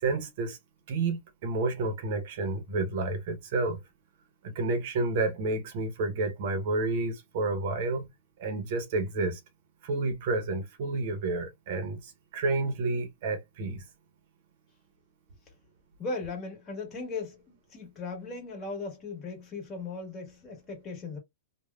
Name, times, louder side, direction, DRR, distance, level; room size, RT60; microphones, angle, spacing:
voice 1, 0.0-0.6 0.9-3.8 4.4-8.1 8.4-9.4 9.8-13.8, right 3 dB, 55° right, 0.9 m, -30 dB
voice 2, 16.0-21.2, left 3 dB, 25° left, 1.7 m, -38 dB
3.1 x 2.3 x 2.3 m
hypercardioid pair, 145°, 0 cm